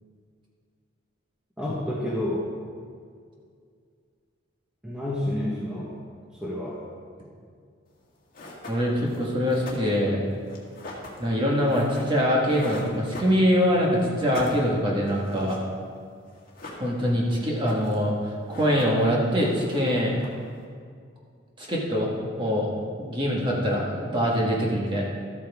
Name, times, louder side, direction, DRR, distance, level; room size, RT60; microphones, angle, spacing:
voice 1, 1.6-2.5 4.8-6.0 6.3-6.8, left 1 dB, 5° right, -7 dB, 1.3 m, -29 dB
sound 1, 7.9-8.0 8.3-13.8 14.1-16.0 16.3-17.2 17.5-18.1 18.3-19.1 19.3-20.6, left 2 dB, 45° left, 1.8 m, -42 dB
voice 2, 8.7-10.2 11.2-15.6 16.8-20.2 21.6-22.7 23.0-25.0, equal, 25° right, -4 dB, 1.7 m, -24 dB
13.0 x 8.7 x 3.6 m, 2.1 s
head